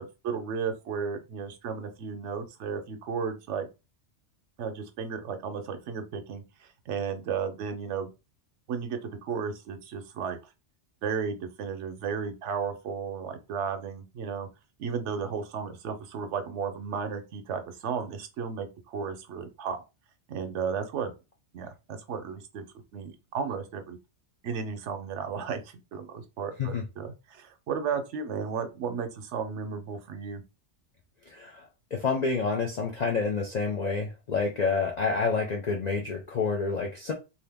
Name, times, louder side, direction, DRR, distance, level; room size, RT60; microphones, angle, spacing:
voice 1, 0.0-3.7 4.6-8.1 8.7-10.4 11.0-14.5 14.8-19.8 20.3-21.1 21.5-22.6 22.9-24.0 24.4-30.4, right 6 dB, 75° right, 0.9 m, -34 dB
voice 2, 31.3-31.7 31.9-37.1, left 4 dB, 50° left, 0.5 m, -28 dB
2.8 x 2.5 x 3.4 m
omnidirectional pair, 1.2 m